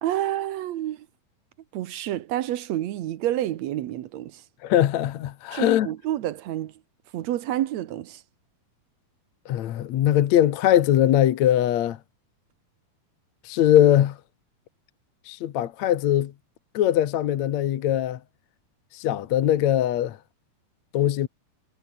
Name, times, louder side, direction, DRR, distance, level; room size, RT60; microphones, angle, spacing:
voice 1, 0.0-1.1 1.7-4.4 5.5-6.7 7.1-8.2, right 13 dB, 70° right, 1.7 m, -29 dB
voice 2, 4.6-5.9 9.5-12.0 13.5-14.2 15.3-16.3 16.7-18.2 18.9-20.2 20.9-21.3, left 11 dB, 60° left, 2.0 m, -21 dB
omnidirectional pair, 4.4 m